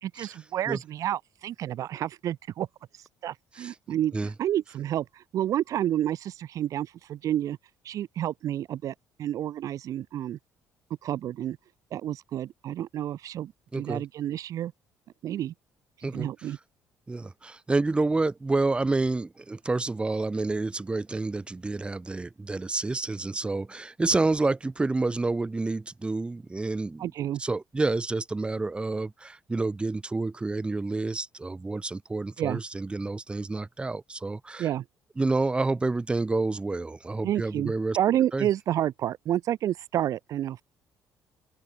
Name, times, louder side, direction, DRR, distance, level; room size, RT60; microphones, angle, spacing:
voice 1, 0.0-2.7 3.0-7.6 7.8-10.4 11.0-11.6 11.9-14.7 15.2-15.5 16.1-16.6 27.0-27.4 32.4-32.6 34.6-34.8 37.2-40.6, right 11 dB, 60° right, 2.3 m, -30 dB
voice 2, 13.7-14.0 16.0-16.3 17.1-27.1 27.4-34.7 35.2-38.0 38.3-38.5, right 3 dB, 15° right, 5.0 m, -29 dB
open air
cardioid pair, 120°, 6 cm